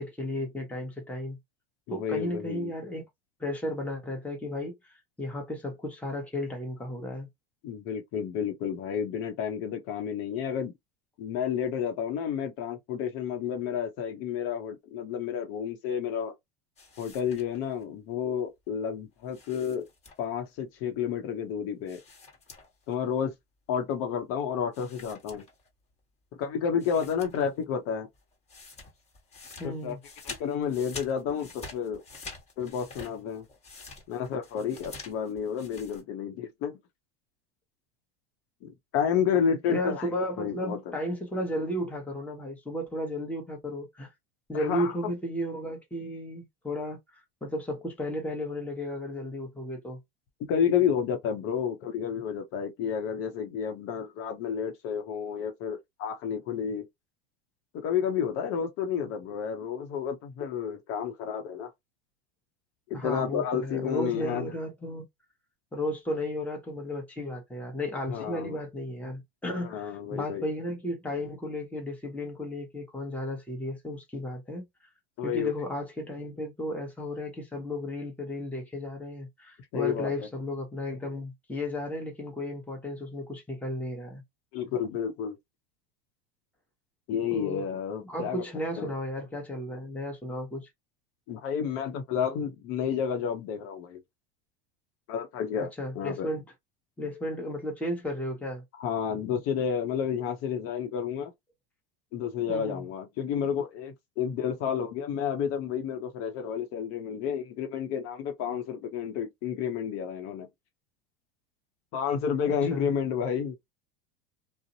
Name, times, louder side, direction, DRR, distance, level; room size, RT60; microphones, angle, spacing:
voice 1, 0.0-1.4 1.9-3.0 3.4-7.3 29.6-30.0 39.7-44.1 44.5-50.0 62.9-65.1 65.7-74.6 75.2-84.2 87.3-87.6 88.0-90.7 95.8-96.4 97.0-98.6 102.5-102.8 112.7-112.9, left 1 dB, 5° left, 1.0 m, -34 dB
voice 2, 1.9-2.7 7.6-10.7 11.2-16.3 17.0-19.9 20.2-22.0 22.9-23.3 23.7-25.4 26.4-28.1 29.6-30.0 30.3-32.0 32.6-33.5 34.1-36.8 38.6-40.0 40.4-40.8 44.5-45.1 50.5-56.9 57.7-61.7 62.9-64.4 68.1-68.6 69.6-70.4 75.2-75.5 79.7-80.3 84.5-85.4 87.1-88.4 88.8-88.9 91.3-94.0 95.1-96.3 98.8-101.3 102.1-110.5 111.9-113.6, left 7 dB, 50° left, 0.7 m, -30 dB
sound 1, 16.8-17.8 19.3-20.5 21.9-22.9 23.2-23.3 24.7-25.9 26.4-26.5 26.8-27.6 27.9-36.0, left 3 dB, 20° left, 1.3 m, -47 dB
2.5 x 2.0 x 2.7 m
hypercardioid pair, 100°, 29 cm